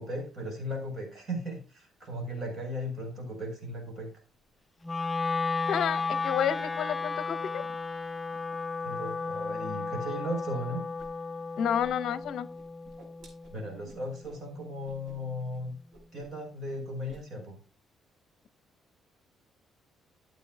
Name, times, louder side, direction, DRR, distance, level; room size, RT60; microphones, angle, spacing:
voice 1, 0.0-4.1 8.8-10.8 13.5-15.7 16.1-17.6, equal, 40° right, 3 dB, 5.2 m, -36 dB
Wind instrument woodwind instrument, 4.8-15.0, left 4 dB, 15° left, 0.4 m, -34 dB
voice 2, 5.7-7.6 11.6-12.5, left 9 dB, 60° left, 13 dB, 0.8 m, -30 dB
Whoosh swoosh swish, 11.0-11.1 11.4-12.3 12.5-14.4 14.8-15.1 15.4-15.6 15.9-16.4 16.7-17.2, right 1 dB, 60° right, 5.3 m, -54 dB
13.0 x 8.7 x 2.3 m, 0.33 s
cardioid pair, 155°, 0 cm